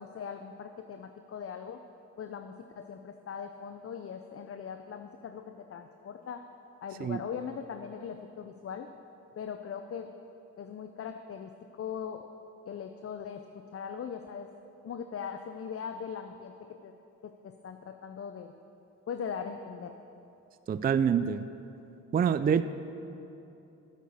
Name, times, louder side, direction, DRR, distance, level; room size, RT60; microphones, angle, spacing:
voice 1, 0.0-1.8 2.2-6.4 6.8-8.9 9.4-10.1 10.6-12.3 12.7-14.5 14.8-16.9 17.2-18.5 19.1-19.9, left 7 dB, 40° left, 7 dB, 0.7 m, -40 dB
voice 2, 20.7-21.4 22.1-22.6, right 7 dB, 25° right, 12 dB, 0.4 m, -26 dB
11.0 x 7.4 x 6.9 m, 2.9 s
supercardioid pair, 55°, 34 cm